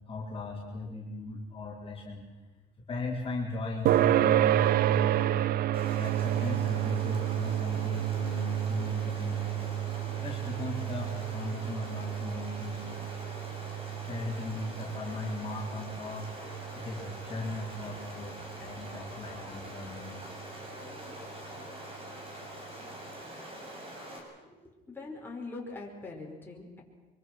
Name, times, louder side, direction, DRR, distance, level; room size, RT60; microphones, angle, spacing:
voice 1, 0.1-2.3 2.8-5.4 6.0-9.6 10.1-13.2 14.0-16.3 16.7-20.3, left 2 dB, 35° left, -3 dB, 4.3 m, -38 dB
sound 1, 3.9-18.8, right 12 dB, 60° right, 0.6 m, -30 dB
Stream, 5.7-24.2, right 1 dB, 35° right, 6.6 m, -44 dB
voice 2, 24.4-26.8, left 3 dB, 10° left, -2 dB, 5.5 m, -43 dB
24.5 x 24.5 x 6.2 m, 1.2 s
cardioid pair, 110°, 17 cm